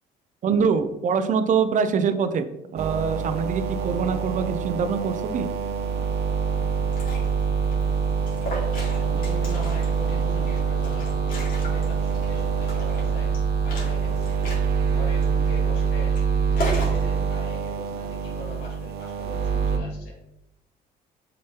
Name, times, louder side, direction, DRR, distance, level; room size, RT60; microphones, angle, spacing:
voice 1, 0.4-2.5 2.7-5.5, right 6 dB, 50° right, 11 dB, 0.6 m, -24 dB
sound 1, 2.8-19.8, right 6 dB, 75° right, 0.9 m, -25 dB
Liquid, 6.7-17.0, left 1 dB, 55° left, 2.4 m, -37 dB
voice 2, 9.0-13.4 13.6-14.4 14.8-16.2 16.5-20.3, left 1 dB, 85° left, -1 dB, 2.0 m, -41 dB
6.6 x 5.2 x 2.8 m, 0.89 s
cardioid pair, 110°, 17 cm